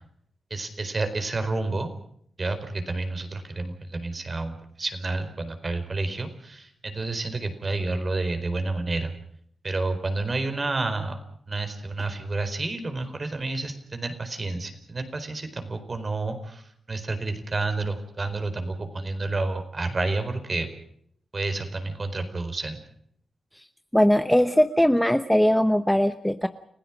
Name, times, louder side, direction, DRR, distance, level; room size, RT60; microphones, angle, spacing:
voice 1, 0.5-1.9 2.4-9.1 9.6-11.2 11.5-20.7 21.3-22.8, right 3 dB, 35° right, 8 dB, 4.5 m, -30 dB
voice 2, 23.9-26.5, equal, 5° left, 10 dB, 0.9 m, -20 dB
30.0 x 16.5 x 6.1 m, 0.67 s
cardioid pair, 90°, 0 cm